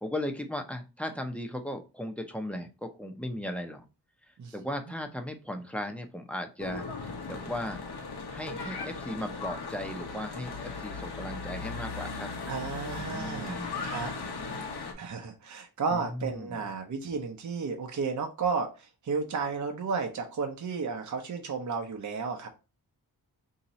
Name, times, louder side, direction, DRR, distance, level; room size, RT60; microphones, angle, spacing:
voice 1, 0.0-3.8 4.5-6.8 7.3-7.8 8.3-12.3 13.0-13.9 15.9-16.6, left 1 dB, 5° left, 4 dB, 0.6 m, -37 dB
Church bell / Traffic noise roadway noise, 6.6-14.9, left 4 dB, 75° left, 0.9 m, -37 dB
voice 2, 12.5-14.1 15.0-22.5, right 5 dB, 50° right, 3 dB, 0.7 m, -33 dB
2.9 x 2.8 x 4.0 m, 0.30 s
wide cardioid pair, 95°, 39 cm